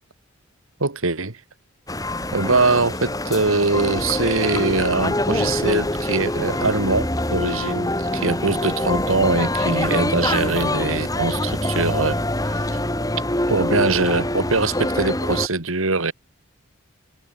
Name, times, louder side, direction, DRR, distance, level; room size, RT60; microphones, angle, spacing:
voice 1, 0.8-1.4 2.3-12.8 13.5-16.1, right 3 dB, 85° right, 2.4 m, -22 dB
sound 1, 1.9-15.5, left 1 dB, 15° left, 5.9 m, -24 dB
head